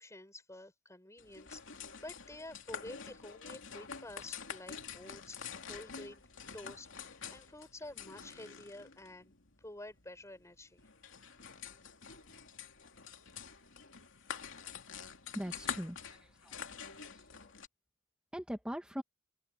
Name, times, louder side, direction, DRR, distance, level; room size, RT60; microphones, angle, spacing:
voice 1, 0.0-6.2 6.5-9.3 9.6-10.8 11.7-11.8, left 1 dB, 15° left, 7.6 m, -50 dB
sound 1, 1.2-17.7, left 6 dB, 65° left, 3.0 m, -47 dB
voice 2, 15.4-16.2 16.4-16.5 18.3-19.0, equal, 5° right, 1.8 m, -40 dB
open air
head